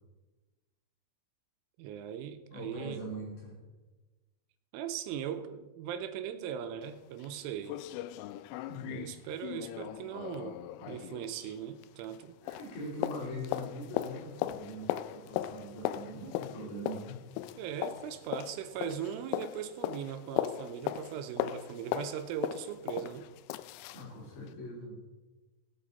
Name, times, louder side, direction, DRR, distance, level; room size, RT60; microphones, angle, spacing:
voice 1, 1.8-3.0 4.7-7.8 8.9-12.4 17.6-23.3, right 9 dB, 85° right, 8 dB, 3.2 m, -39 dB
voice 2, 2.5-3.6 8.7-9.0 12.4-17.2 23.9-25.0, equal, 60° left, -3 dB, 5.1 m, -42 dB
sound 1, 6.8-6.9 7.2-7.3 7.7-12.2 12.5-24.1 24.5-24.6, left 13 dB, 90° left, 3.2 m, -38 dB
17.5 x 8.8 x 4.1 m, 1.2 s
omnidirectional pair, 5.7 m